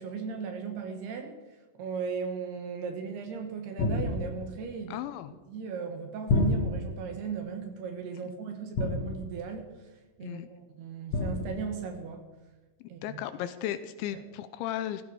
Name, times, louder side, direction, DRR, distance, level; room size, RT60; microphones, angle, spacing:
voice 1, 0.0-1.4 1.8-5.0 5.5-9.7 10.2-12.3 12.9-13.2 14.1-14.2, right 6 dB, 65° right, 6 dB, 3.0 m, -37 dB
sound 1, 3.8-4.6 6.3-7.1 8.7-9.5 11.1-11.8, left 2 dB, 65° left, 1.6 m, -29 dB
voice 2, 4.9-5.3 8.2-8.3 10.2-10.5 13.0-15.0, left 11 dB, 80° left, 12 dB, 2.9 m, -35 dB
17.0 x 14.5 x 4.8 m, 1.2 s
omnidirectional pair, 5.6 m